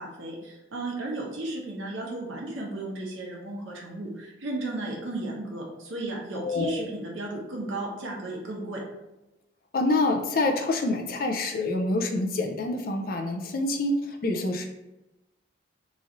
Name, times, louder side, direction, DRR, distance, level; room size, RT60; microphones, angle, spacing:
voice 1, 0.0-8.8, right 2 dB, 85° right, -2 dB, 1.0 m, -34 dB
voice 2, 6.4-6.8 9.7-14.7, left 2 dB, 50° left, 5 dB, 0.4 m, -27 dB
3.1 x 2.6 x 3.8 m, 0.98 s
head